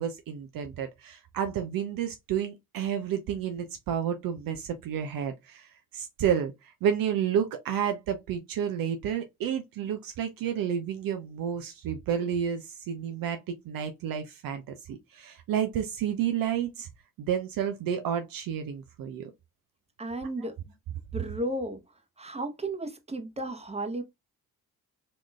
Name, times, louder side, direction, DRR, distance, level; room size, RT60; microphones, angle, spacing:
voice 1, 0.0-13.4 13.6-16.9 17.2-19.3 20.4-20.5, right 9 dB, 55° right, 0.7 m, -30 dB
voice 2, 20.0-20.6 21.1-21.8 22.2-24.0, right 1 dB, 15° right, 1.1 m, -33 dB
4.2 x 2.9 x 2.4 m
hypercardioid pair, 45°, 42 cm